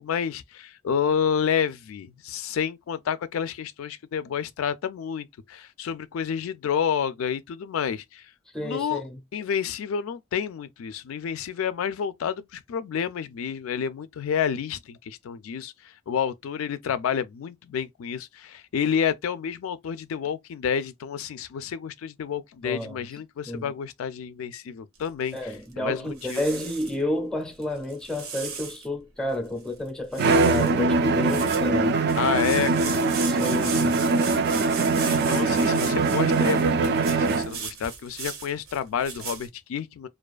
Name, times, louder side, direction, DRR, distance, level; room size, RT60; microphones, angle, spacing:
voice 1, 0.0-8.3 8.6-9.0 9.3-26.4 32.1-33.8 35.0-40.1, left 7 dB, 85° left, 0.3 m, -29 dB
voice 2, 8.5-9.2 22.6-23.0 23.5-23.7 25.3-32.0 33.3-34.0, left 1 dB, 5° left, 0.5 m, -31 dB
sound 1, 25.0-25.7 26.2-27.0 27.6-28.9 29.3-29.4 29.6-29.9 30.1-30.8 31.1-39.5, right 6 dB, 80° right, 0.8 m, -37 dB
Bowed string instrument, 30.2-37.6, right 3 dB, 55° right, 0.3 m, -22 dB
2.4 x 2.3 x 2.3 m
head